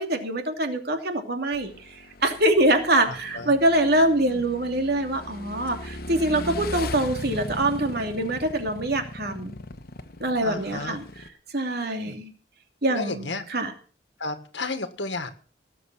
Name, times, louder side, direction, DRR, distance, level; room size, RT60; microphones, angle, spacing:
voice 1, 0.0-9.5 10.2-11.3 11.5-12.3 12.8-13.7, right 1 dB, 60° right, 4 dB, 2.8 m, -24 dB
Motorcycle / Engine, 1.5-11.3, left 1 dB, 55° left, 1.3 m, -38 dB
voice 2, 3.1-3.5 4.2-4.4 10.4-11.0 11.8-12.2 12.9-13.4 14.2-15.3, left 3 dB, 80° left, 8 dB, 1.7 m, -33 dB
18.5 x 7.8 x 6.2 m, 0.41 s
head